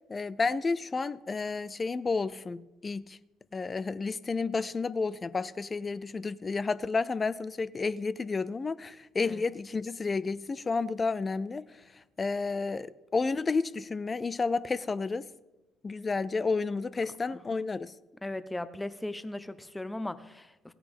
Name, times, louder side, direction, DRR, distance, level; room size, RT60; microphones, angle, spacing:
voice 1, 0.1-3.2 3.5-15.3 15.8-17.9, left 4 dB, 30° left, 0.4 m, -31 dB
voice 2, 18.2-20.7, left 1 dB, 10° left, 0.8 m, -38 dB
16.5 x 9.5 x 3.5 m
figure-of-eight pair, 50°, 0 cm